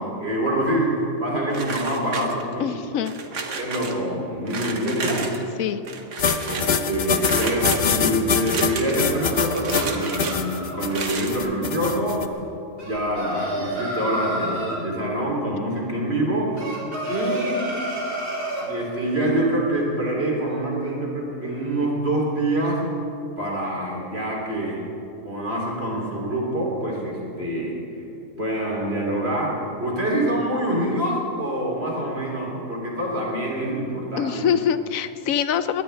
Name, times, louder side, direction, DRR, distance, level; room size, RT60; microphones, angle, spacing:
voice 1, 0.0-2.8 3.6-5.3 6.4-12.2 12.8-16.8 17.1-17.7 18.6-22.8 23.4-24.8 25.2-27.7 28.4-29.5 29.8-34.5, right 1 dB, 50° right, -3 dB, 3.4 m, -25 dB
sound 1, 1.5-2.6 3.0-3.9 4.5-5.4 5.8-6.7 7.2-7.8 8.4-9.1 9.5-10.4 10.8-11.4, right 4 dB, 65° right, 1.6 m, -31 dB
voice 2, 2.6-3.1 5.6-5.8 34.2-35.8, left 8 dB, 80° left, 12 dB, 1.1 m, -24 dB
sound 2, 6.2-12.3, left 6 dB, 55° left, 1.0 m, -24 dB
sound 3, 8.8-10.8 12.8-14.8 16.6-18.7, right 1 dB, 85° right, 4.0 m, -30 dB
22.0 x 19.0 x 3.4 m, 2.8 s
omnidirectional pair, 1.4 m